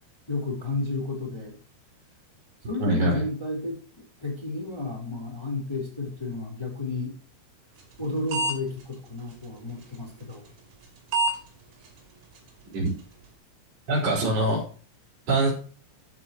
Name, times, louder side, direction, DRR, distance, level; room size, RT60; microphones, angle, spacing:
voice 1, 0.3-1.5 2.6-3.8 4.2-7.1 8.0-10.4, left 2 dB, 5° left, -2 dB, 3.1 m, -32 dB
voice 2, 2.8-3.2 12.7-12.9 13.9-14.6 15.3-15.5, right 1 dB, 30° right, -4 dB, 5.2 m, -23 dB
sound 1, 7.8-8.0 8.3-8.5 8.8-8.9 9.8-10.0 10.8-10.9 11.1-11.4 11.8-11.9 12.4-12.5 12.9-13.0, right 2 dB, 50° right, 4.3 m, -25 dB
14.0 x 8.3 x 3.1 m, 0.41 s
omnidirectional pair, 5.9 m